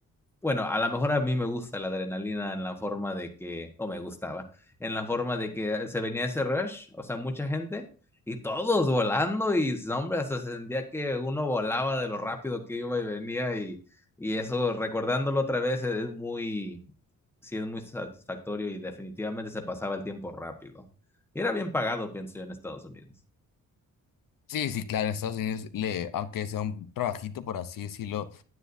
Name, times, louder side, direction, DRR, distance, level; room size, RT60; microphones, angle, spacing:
voice 1, 0.4-4.4 4.8-7.9 8.3-13.8 14.2-16.9 17.4-20.9 21.3-23.0, left 2 dB, 5° left, 4 dB, 1.2 m, -30 dB
voice 2, 24.5-28.4, left 9 dB, 80° left, 10 dB, 0.8 m, -32 dB
9.9 x 9.5 x 2.7 m, 0.38 s
wide cardioid pair, 150°, 33 cm